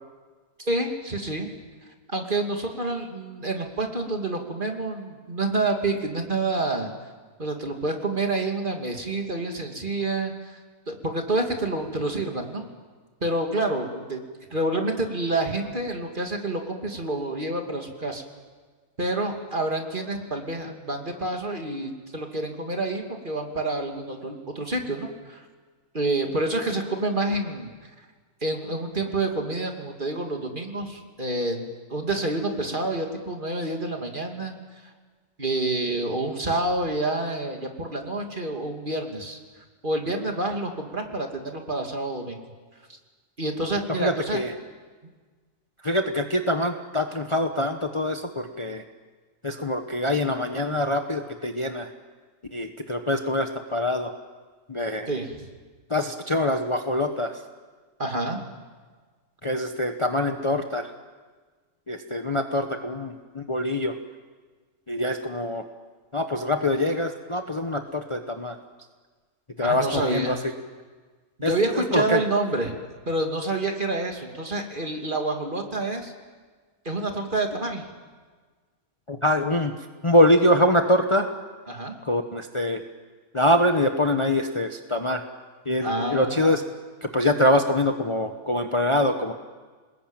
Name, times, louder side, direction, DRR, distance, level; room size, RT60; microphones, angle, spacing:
voice 1, 0.7-1.5 2.1-6.9 7.4-10.6 10.9-12.7 13.2-14.2 14.5-18.2 19.0-25.5 25.9-27.7 28.4-34.5 35.4-39.4 39.8-42.4 43.4-44.4 55.1-55.5 58.0-58.4 69.6-70.4 71.4-72.7 73.1-76.1 76.8-77.9 81.7-81.9 85.8-86.4, right 2 dB, 35° right, 3 dB, 2.7 m, -28 dB
voice 2, 44.0-44.5 45.8-48.8 49.4-51.9 52.5-54.1 54.7-55.1 55.9-57.4 59.4-60.9 61.9-63.9 64.9-65.6 66.1-68.6 69.6-70.4 71.4-72.2 79.1-79.7 80.0-81.3 82.0-82.8 83.3-85.2 85.7-86.6 87.0-89.3, left 1 dB, 25° left, 5 dB, 1.1 m, -24 dB
28.5 x 20.5 x 9.0 m, 1.4 s
omnidirectional pair, 1.5 m